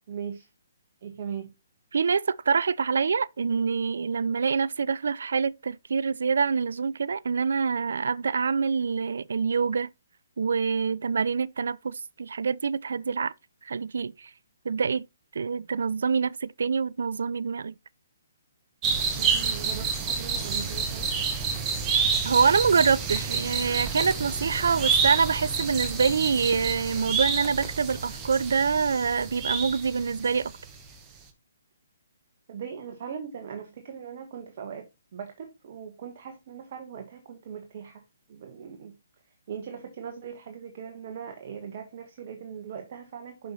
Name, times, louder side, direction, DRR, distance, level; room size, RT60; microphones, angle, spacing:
voice 1, 0.1-0.5 1.0-1.5 19.2-21.1 32.5-38.0 38.3-39.0 39.5-43.5, right 7 dB, 45° right, 1.3 m, -39 dB
voice 2, 1.9-9.9 10.4-13.3 13.6-14.3 14.7-15.1 15.3-17.7 22.2-30.5, right 5 dB, 65° right, 0.3 m, -25 dB
sound 1, 18.8-30.5 30.8-30.9, right 5 dB, 20° right, 1.6 m, -29 dB
7.4 x 5.7 x 4.1 m
figure-of-eight pair, 135°, 0 cm